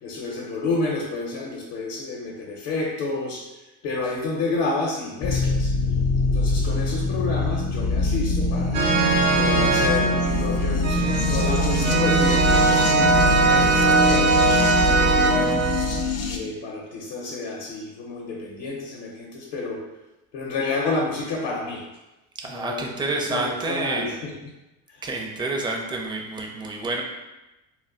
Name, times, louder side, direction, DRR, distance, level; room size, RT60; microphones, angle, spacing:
voice 1, 0.0-3.4 3.8-5.7 6.3-8.9 9.4-15.6 16.2-19.8 20.3-21.8 22.4-24.5 24.9-25.0, left 3 dB, 70° left, -2 dB, 0.7 m, -30 dB
sound 1, 5.2-16.4, left 2 dB, 40° left, 0.5 m, -24 dB
sound 2, 8.7-16.0, right 3 dB, 90° right, 0.7 m, -20 dB
voice 2, 22.4-24.1 25.0-27.0, right 3 dB, 10° right, 1 dB, 0.4 m, -28 dB
2.2 x 2.1 x 3.7 m, 1.0 s
supercardioid pair, 80°, 40 cm